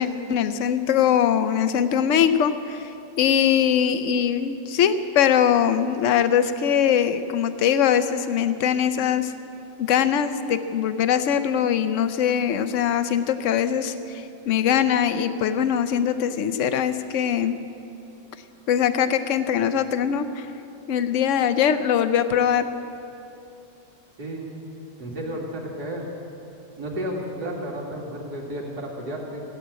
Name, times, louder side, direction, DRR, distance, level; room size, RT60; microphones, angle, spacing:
voice 1, 0.0-2.9 3.2-9.3 9.8-17.6 18.7-20.5 20.9-22.7, left 8 dB, 75° left, 11 dB, 0.7 m, -22 dB
voice 2, 24.2-24.5 25.0-26.1 26.8-29.4, equal, 60° right, -2 dB, 2.8 m, -32 dB
16.5 x 8.1 x 9.4 m, 2.7 s
omnidirectional pair, 2.0 m